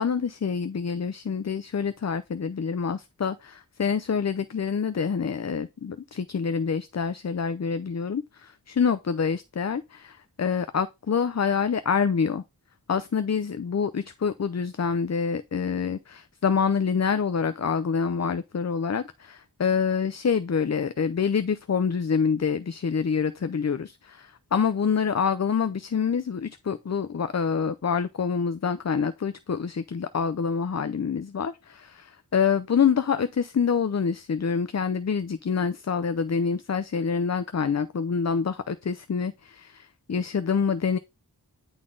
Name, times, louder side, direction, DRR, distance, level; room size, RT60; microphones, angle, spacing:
voice 1, 0.0-12.4 12.9-41.0, left 6 dB, 45° left, 0.5 m, -26 dB
9.9 x 4.1 x 3.8 m
wide cardioid pair, 55°, 38 cm